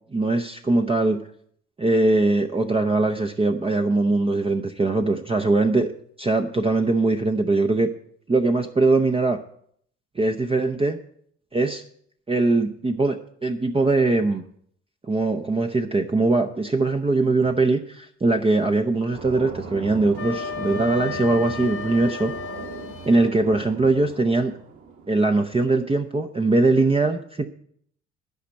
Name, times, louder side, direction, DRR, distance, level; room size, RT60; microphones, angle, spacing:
voice 1, 0.1-1.2 1.8-5.9 6.2-7.9 8.3-9.4 10.2-11.0 11.5-11.8 12.3-13.2 13.4-14.4 15.1-22.3 23.1-24.5 25.1-27.4, right 2 dB, 15° right, 5 dB, 0.7 m, -21 dB
sound 1, 19.1-25.5, right 4 dB, 55° right, 2.7 m, -38 dB
Wind instrument woodwind instrument, 20.1-23.3, left 7 dB, 40° left, 1.1 m, -34 dB
12.0 x 5.1 x 8.3 m, 0.65 s
hypercardioid pair, 55°, 35 cm